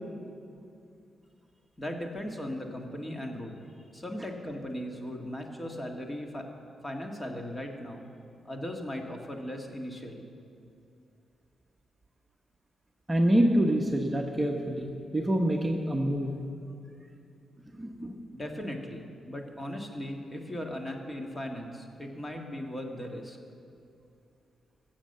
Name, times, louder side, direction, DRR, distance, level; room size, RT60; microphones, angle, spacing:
voice 1, 1.8-3.6 3.9-6.5 6.8-8.1 8.5-10.3 18.3-23.4, left 1 dB, 20° left, 2 dB, 1.8 m, -38 dB
voice 2, 13.1-14.9 15.1-16.4 17.8-18.2, right 1 dB, 15° right, 1 dB, 1.1 m, -26 dB
15.0 x 7.5 x 7.9 m, 2.5 s
cardioid pair, 85°, 0 cm